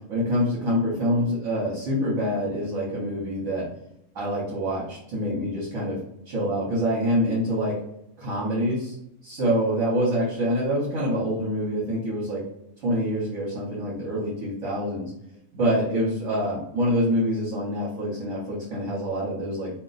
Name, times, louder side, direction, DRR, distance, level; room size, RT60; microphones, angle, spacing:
voice 1, 0.1-3.7 4.1-6.0 6.3-7.8 8.2-8.9 9.2-12.4 12.8-15.1 15.5-19.7, equal, 65° right, -7 dB, 1.1 m, -26 dB
2.5 x 2.1 x 3.9 m, 0.82 s
omnidirectional pair, 1.5 m